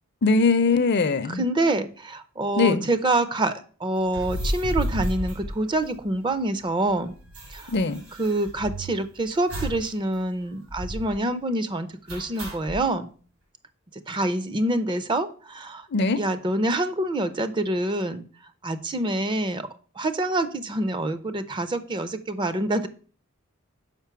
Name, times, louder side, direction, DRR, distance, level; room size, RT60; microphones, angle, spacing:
voice 1, 0.2-1.4 2.6-2.9 7.7-8.0 15.9-16.2, left 3 dB, 50° left, 0.5 m, -21 dB
voice 2, 1.3-7.1 7.5-7.7 8.2-13.1 14.1-15.9 16.2-18.2 18.6-19.7 20.0-22.9, right 1 dB, 20° right, 0.4 m, -26 dB
sound 1, 4.0-6.3 6.6-6.7 6.9-9.0 9.5-9.9 10.2-10.3 10.7-11.2 12.1-12.8, equal, 80° right, 2.9 m, -32 dB
5.9 x 5.3 x 5.7 m
head